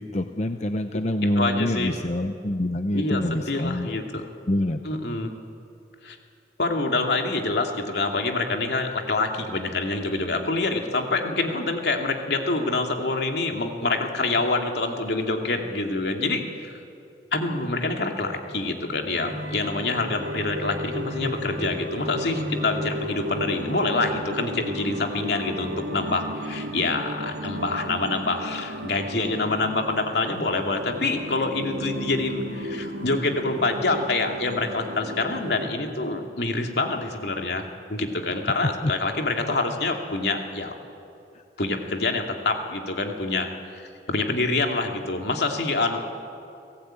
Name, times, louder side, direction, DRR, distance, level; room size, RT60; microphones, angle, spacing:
voice 1, 0.0-5.0 38.6-38.9 41.3-41.4, left 1 dB, 40° left, 7 dB, 0.8 m, -27 dB
voice 2, 1.4-1.9 2.9-4.2 4.8-5.3 6.0-6.2 6.6-16.8 17.3-40.7 41.6-46.0, left 3 dB, 70° left, 3 dB, 2.5 m, -26 dB
sound 1, 19.1-35.7, equal, 85° right, 3.0 m, -34 dB
29.0 x 17.5 x 9.0 m, 2.6 s
head